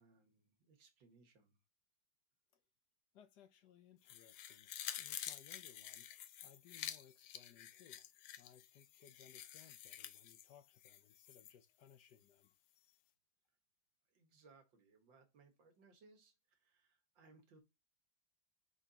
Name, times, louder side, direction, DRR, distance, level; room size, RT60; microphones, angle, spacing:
voice 1, 0.0-1.6 14.1-17.6, right 3 dB, 80° right, 2.2 m, -67 dB
voice 2, 3.1-8.1 8.4-12.5, left 9 dB, 70° left, 1.3 m, -64 dB
sound 1, 4.1-11.5 11.9-12.0, left 11 dB, 85° left, 1.3 m, -50 dB
6.0 x 5.8 x 2.9 m
omnidirectional pair, 2.0 m